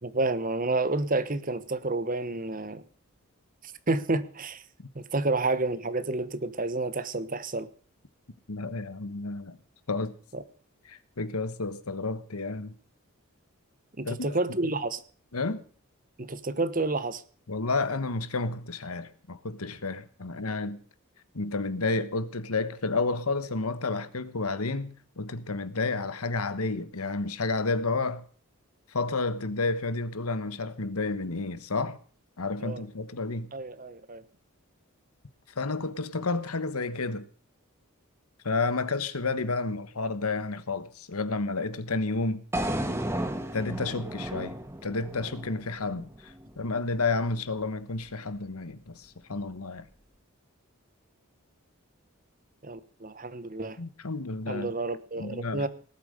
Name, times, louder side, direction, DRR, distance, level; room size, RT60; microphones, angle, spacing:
voice 1, 0.0-2.8 3.9-4.6 4.9-7.7 10.3-10.4 14.0-15.0 16.2-17.2 32.6-32.8 33.5-34.2 52.6-53.8 54.5-55.7, right 2 dB, 40° right, 1.1 m, -30 dB
voice 2, 8.5-9.6 9.9-10.2 10.8-12.7 14.0-14.4 14.6-14.7 15.3-15.6 17.5-20.8 21.3-28.3 28.9-32.0 32.4-33.5 35.6-37.3 38.4-42.4 43.5-49.9 53.8-54.7 55.2-55.7, left 3 dB, 85° left, 1.3 m, -31 dB
sound 1, 42.5-46.6, right 1 dB, 10° right, 1.4 m, -33 dB
18.5 x 8.8 x 6.6 m
head